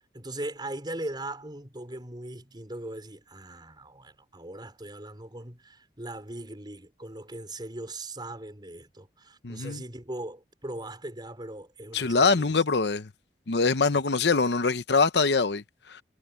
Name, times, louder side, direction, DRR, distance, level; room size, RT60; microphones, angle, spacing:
voice 1, 0.1-12.6, right 1 dB, 25° right, 4.7 m, -39 dB
voice 2, 9.4-9.8 11.9-13.1 13.5-16.0, left 4 dB, 70° left, 0.8 m, -24 dB
head